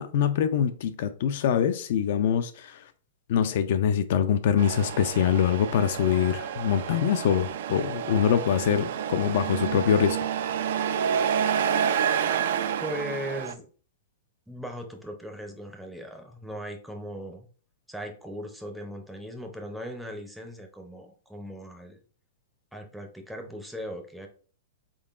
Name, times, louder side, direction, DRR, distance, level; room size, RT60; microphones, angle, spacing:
voice 1, 0.0-2.8 3.3-10.2, left 8 dB, 55° left, 0.3 m, -24 dB
Truck, 4.6-13.5, right 8 dB, 65° right, 0.3 m, -29 dB
voice 2, 12.8-13.7 14.5-17.5 17.9-22.0 22.7-24.3, equal, ahead, 0.5 m, -38 dB
3.7 x 3.6 x 2.4 m
hypercardioid pair, 150°, 0 cm